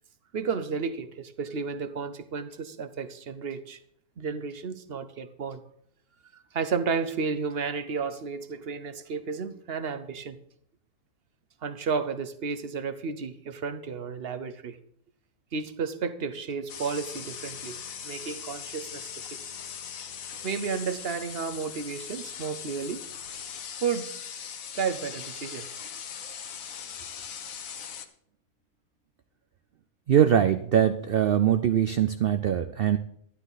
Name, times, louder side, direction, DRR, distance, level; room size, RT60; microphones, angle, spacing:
voice 1, 0.3-3.8 4.2-5.6 6.3-10.4 11.6-14.8 15.5-17.8 18.0-19.2 20.4-23.0 23.8-24.1 24.7-25.8, right 5 dB, 50° right, 0.8 m, -32 dB
sound 1, 16.7-28.1, left 7 dB, 65° left, 1.2 m, -40 dB
voice 2, 30.1-33.0, right 9 dB, 90° right, 0.5 m, -22 dB
11.5 x 11.5 x 4.0 m
omnidirectional pair, 1.6 m